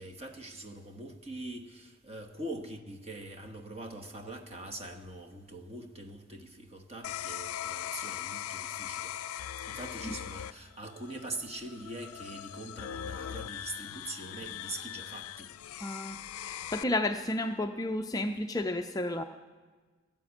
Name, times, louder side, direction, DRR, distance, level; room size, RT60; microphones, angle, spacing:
voice 1, 0.0-9.1 9.7-15.5, right 1 dB, 30° right, 1.1 m, -43 dB
sound 1, 7.0-16.8, left 11 dB, 85° left, 0.4 m, -40 dB
voice 2, 9.7-10.2 15.8-19.2, left 1 dB, 15° left, 0.4 m, -32 dB
15.5 x 9.2 x 8.2 m
head